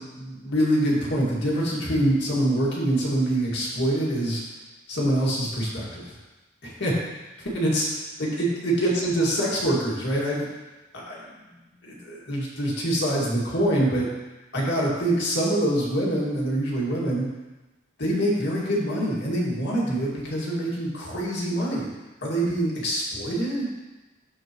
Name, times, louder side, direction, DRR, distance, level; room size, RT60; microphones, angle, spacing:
voice 1, 0.0-4.4 4.9-6.1 6.6-7.0 7.4-7.9 8.2-10.5 10.9-11.2 11.8-14.1 14.5-17.3 18.0-21.9 22.2-23.7, right 1 dB, 60° left, -5 dB, 2.1 m, -25 dB
13.5 x 4.5 x 3.1 m, 1.1 s
head